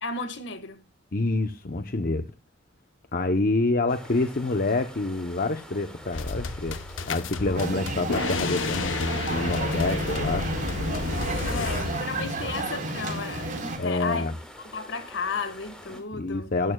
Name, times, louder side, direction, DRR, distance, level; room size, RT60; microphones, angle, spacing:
voice 1, 0.0-0.8 7.4-7.6 11.4-14.3 14.6-16.5, left 4 dB, 65° left, 1.6 m, -33 dB
voice 2, 1.1-2.3 3.1-6.8 7.1-10.5 13.8-14.3 16.1-16.7, left 2 dB, 50° left, 0.8 m, -27 dB
sound 1, 3.9-16.0, equal, 5° left, 3.5 m, -46 dB
sound 2, 6.1-12.0, left 3 dB, 80° left, 0.8 m, -31 dB
sound 3, 7.6-13.8, right 1 dB, 45° right, 4.3 m, -31 dB
17.5 x 13.0 x 2.3 m
head